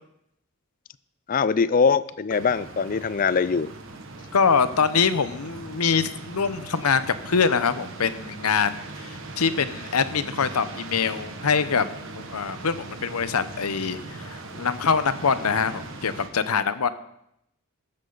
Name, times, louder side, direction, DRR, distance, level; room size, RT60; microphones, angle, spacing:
voice 1, 1.3-3.7, left 5 dB, 40° left, 17 dB, 0.4 m, -22 dB
sound 1, 2.3-16.3, right 2 dB, 60° right, 1.6 m, -40 dB
voice 2, 4.3-16.9, left 5 dB, 85° left, 13 dB, 0.8 m, -24 dB
14.5 x 13.0 x 4.0 m, 0.77 s
head